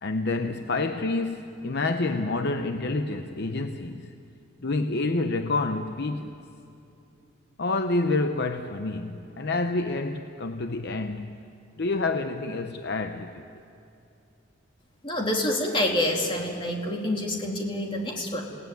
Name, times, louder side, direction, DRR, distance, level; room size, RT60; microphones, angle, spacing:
voice 1, 0.0-4.1 4.6-6.4 7.6-11.4 11.8-13.4, left 3 dB, 55° left, 7 dB, 0.8 m, -28 dB
voice 2, 15.0-18.4, left 1 dB, 25° left, 0 dB, 2.8 m, -27 dB
28.5 x 18.0 x 9.3 m, 2.8 s
head